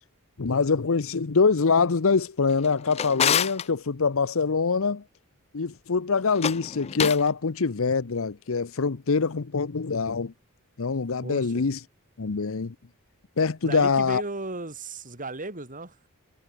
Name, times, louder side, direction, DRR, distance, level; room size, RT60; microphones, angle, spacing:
voice 1, 0.4-5.0 5.5-10.3 10.8-11.8 12.2-12.7 13.4-14.2, left 4 dB, 65° left, 0.7 m, -24 dB
Drawer open or close, 2.5-3.7 6.3-7.3, left 8 dB, 30° left, 0.3 m, -27 dB
voice 2, 11.2-11.6 13.6-16.1, right 2 dB, 40° right, 4.3 m, -35 dB
head